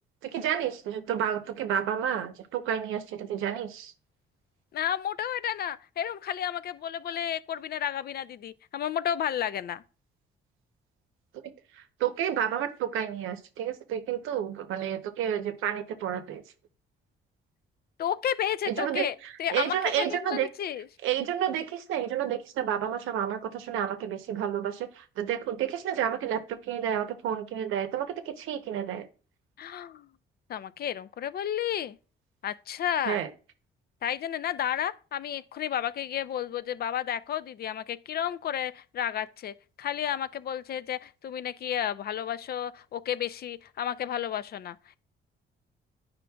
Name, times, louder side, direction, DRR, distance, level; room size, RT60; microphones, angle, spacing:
voice 1, 0.2-3.9 11.7-16.4 18.7-20.5 21.0-29.1 33.1-33.3, right 9 dB, 90° right, 0.8 m, -30 dB
voice 2, 4.7-9.8 18.0-20.9 29.6-30.1 30.5-32.0 32.4-33.2 34.0-45.0, left 10 dB, 50° left, 0.4 m, -32 dB
9.6 x 5.1 x 2.3 m
cardioid pair, 90°, 20 cm